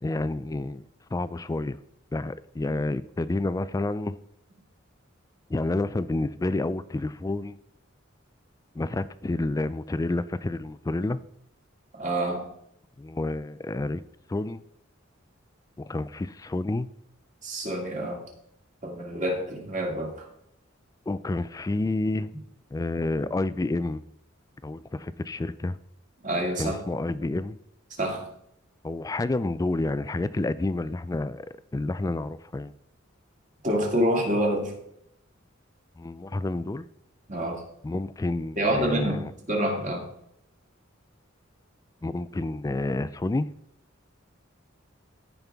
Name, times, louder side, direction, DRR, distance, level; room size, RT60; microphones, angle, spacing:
voice 1, 0.0-0.8 1.1-1.8 2.1-4.2 5.5-7.6 8.8-11.2 13.0-14.0 14.3-14.6 15.8-16.9 21.1-22.3 22.7-24.0 24.6-25.8 26.6-27.6 28.8-31.5 31.7-32.7 36.0-36.9 37.8-39.3 42.0-43.5, left 2 dB, 15° left, 15 dB, 0.3 m, -29 dB
voice 2, 11.9-12.5 17.4-18.2 18.8-20.2 26.2-26.8 28.0-28.3 33.6-34.7 37.3-37.6 38.6-40.1, right 1 dB, 40° right, 0 dB, 2.3 m, -27 dB
15.0 x 5.4 x 3.5 m, 0.75 s
head